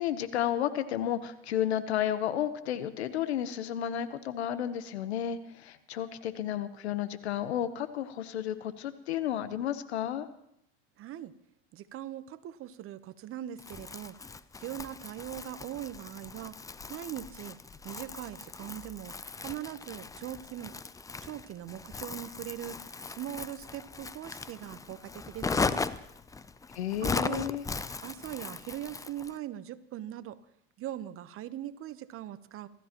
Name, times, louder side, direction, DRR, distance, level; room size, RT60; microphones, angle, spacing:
voice 1, 0.0-10.3 26.7-27.6, left 10 dB, 90° left, 12 dB, 1.1 m, -32 dB
voice 2, 11.0-11.3 11.7-14.1 14.6-16.6 16.9-17.6 17.8-20.7 21.2-25.8 27.0-27.4 28.0-30.4 30.8-32.7, right 12 dB, 45° right, 14 dB, 1.0 m, -41 dB
Crumpling crinkling, 13.6-29.4, left 4 dB, 10° left, 0.5 m, -38 dB
28.0 x 13.5 x 3.0 m, 0.77 s
hypercardioid pair, 95°, 32 cm